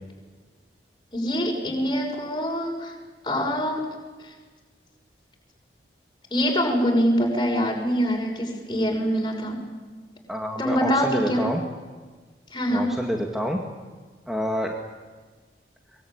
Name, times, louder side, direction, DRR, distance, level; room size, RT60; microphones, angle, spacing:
voice 1, 1.1-2.9 3.2-3.8 4.2-4.3 6.3-9.6 10.6-11.4 12.5-12.9, equal, 25° left, 0 dB, 6.5 m, -24 dB
voice 2, 10.3-11.6 12.7-13.6 14.3-14.7, equal, ahead, 0 dB, 2.2 m, -27 dB
24.0 x 23.0 x 8.9 m, 1.4 s
head